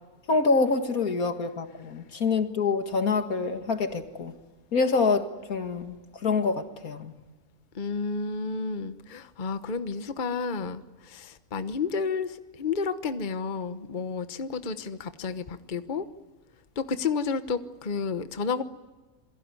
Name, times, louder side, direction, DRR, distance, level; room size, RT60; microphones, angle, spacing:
voice 1, 0.3-4.3 4.7-6.0 6.2-7.1, left 4 dB, 80° left, 7 dB, 2.4 m, -26 dB
voice 2, 7.7-16.1 16.8-18.6, left 5 dB, 35° left, 10 dB, 1.2 m, -31 dB
27.5 x 22.5 x 9.7 m, 1.2 s
omnidirectional pair, 1.5 m